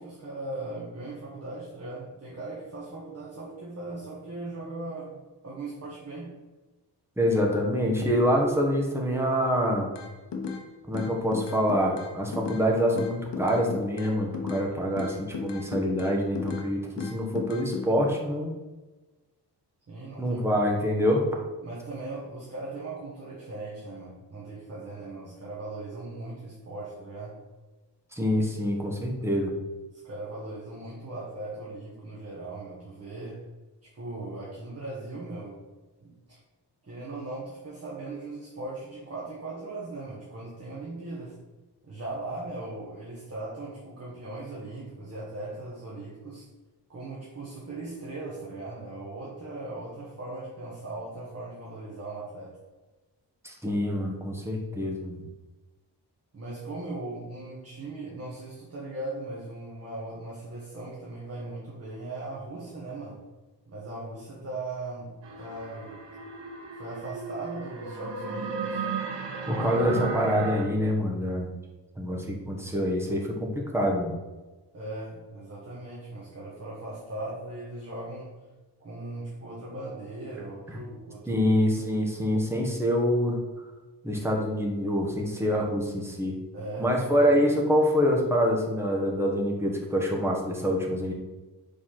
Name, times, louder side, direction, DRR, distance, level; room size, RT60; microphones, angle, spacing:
voice 1, 0.0-6.3 14.6-15.0 19.9-20.8 21.6-27.4 30.0-33.4 33.8-35.6 36.0-36.4 36.8-41.4 41.8-46.4 46.9-52.6 56.3-63.2 63.7-66.0 66.7-68.8 74.7-78.3 78.8-81.8 86.5-87.4, right 2 dB, 35° right, -5 dB, 1.2 m, -39 dB
voice 2, 7.2-9.9 10.9-18.5 20.2-21.2 28.1-29.5 53.4-55.3 69.5-71.5 72.0-74.2 81.3-83.4 84.0-86.4 86.8-91.1, equal, 5° right, -1 dB, 1.1 m, -26 dB
sound 1, 10.0-10.6 10.9-12.7 13.0-14.7 15.0-16.7 17.0-17.9, left 5 dB, 80° left, 0.9 m, -35 dB
sound 2, 65.2-70.6, right 4 dB, 85° right, 1.1 m, -35 dB
5.1 x 4.1 x 5.7 m, 1.2 s
wide cardioid pair, 165°, 42 cm